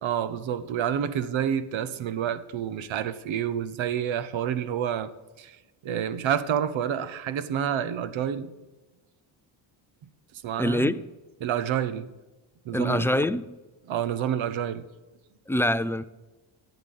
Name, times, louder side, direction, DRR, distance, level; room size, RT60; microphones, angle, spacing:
voice 1, 0.0-5.1 5.4-5.6 5.8-8.5 10.4-10.9 11.4-12.1 12.6-13.1 13.9-14.9, right 9 dB, 65° right, 1.0 m, -28 dB
voice 2, 10.6-11.0 12.7-13.6 15.5-16.0, left 1 dB, 5° left, 0.3 m, -25 dB
11.0 x 8.2 x 6.9 m
cardioid pair, 85°, 50 cm